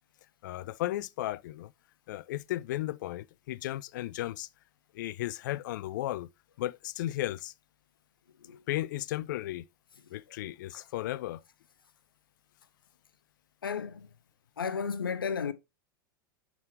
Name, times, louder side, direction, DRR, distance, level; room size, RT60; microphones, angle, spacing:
voice 1, 0.4-1.7 2.1-4.5 4.9-6.3 6.6-7.5 8.7-9.7 10.1-11.4, left 15 dB, 60° left, 0.4 m, -35 dB
voice 2, 13.6-14.1 14.6-15.5, left 6 dB, 80° left, 0.7 m, -33 dB
11.0 x 3.8 x 3.1 m
figure-of-eight pair, 90°, 12 cm